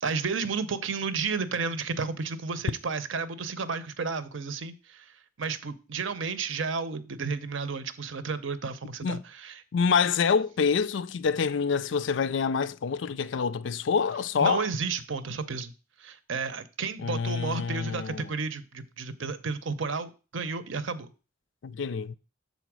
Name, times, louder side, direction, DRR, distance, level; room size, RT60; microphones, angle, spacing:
voice 1, 0.0-9.6 14.4-15.7 16.0-21.1, right 4 dB, 70° right, 0.7 m, -32 dB
voice 2, 9.7-14.7 17.0-18.3 21.6-22.1, left 6 dB, 65° left, 0.4 m, -26 dB
6.9 x 4.1 x 6.0 m
head